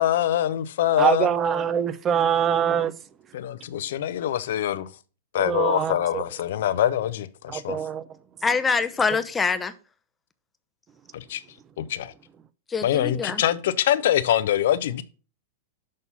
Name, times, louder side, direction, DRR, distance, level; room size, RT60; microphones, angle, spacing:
voice 1, 0.0-1.3 3.3-4.9 5.3-7.8 11.1-11.4 11.8-12.1 12.8-15.0, left 11 dB, 65° left, 0.7 m, -24 dB
voice 2, 1.0-2.9 5.4-6.2 7.5-8.0, right 8 dB, 25° right, 0.7 m, -24 dB
voice 3, 8.4-9.7 12.7-13.4, left 5 dB, 15° left, 0.8 m, -24 dB
6.5 x 5.5 x 5.6 m
hypercardioid pair, 110°, 0 cm